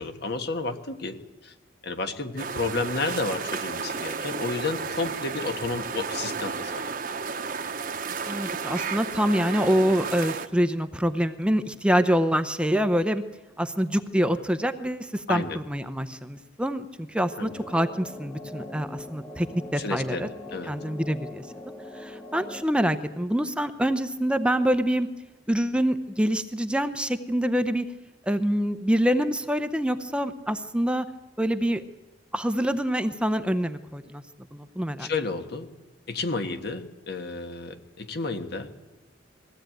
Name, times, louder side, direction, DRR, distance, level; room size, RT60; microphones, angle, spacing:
voice 1, 0.0-1.5 1.8-6.9 15.3-15.6 17.4-17.5 19.8-20.7 35.0-35.7 36.1-38.7, left 3 dB, 60° left, 7 dB, 1.5 m, -31 dB
sound 1, 2.4-10.5, right 5 dB, 50° right, 1.1 m, -33 dB
voice 2, 8.3-13.2 13.6-20.3 20.7-21.4 21.9-25.1 25.5-27.8 28.2-31.1 31.4-31.8 32.3-34.2 34.5-35.1, equal, 5° right, 9 dB, 0.7 m, -25 dB
sound 2, 17.5-22.6, left 2 dB, 10° left, 1.2 m, -41 dB
21.0 x 16.0 x 9.2 m, 1.2 s
head